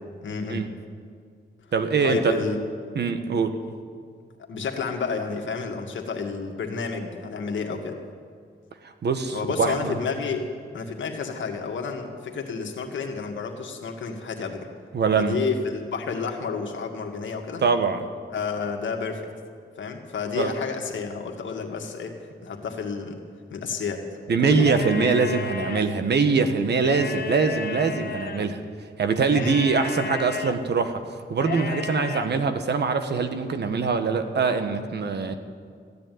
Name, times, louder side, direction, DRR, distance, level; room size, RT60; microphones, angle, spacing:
voice 1, 0.2-0.6 2.0-2.6 4.5-8.0 9.3-10.5 10.7-14.7 15.2-17.6 18.3-19.3 19.8-22.2 22.4-23.2 23.5-24.0 24.4-24.7 29.3-29.6, left 5 dB, 75° left, 3 dB, 2.0 m, -30 dB
voice 2, 1.7-2.3 2.9-3.6 8.8-9.9 14.9-15.4 17.6-18.0 20.4-20.5 24.3-28.6 29.0-31.0 31.3-35.4, right 5 dB, 60° right, 8 dB, 1.3 m, -23 dB
sound 1, 24.5-25.8 26.7-28.4 29.3-30.5 31.4-32.3, left 5 dB, 55° left, 1.2 m, -33 dB
15.0 x 10.5 x 9.3 m, 2.1 s
cardioid pair, 90°, 20 cm